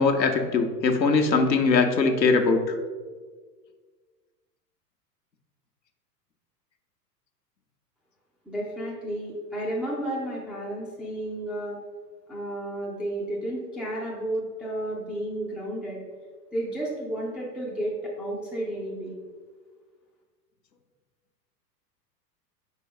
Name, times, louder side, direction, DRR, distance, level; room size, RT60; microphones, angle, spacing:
voice 1, 0.0-2.7, left 4 dB, 85° left, 5 dB, 0.9 m, -21 dB
voice 2, 8.5-11.8 12.3-16.0 16.5-19.1, right 1 dB, ahead, -6 dB, 0.4 m, -32 dB
4.6 x 4.5 x 5.1 m, 1.5 s
figure-of-eight pair, 95°, 50 cm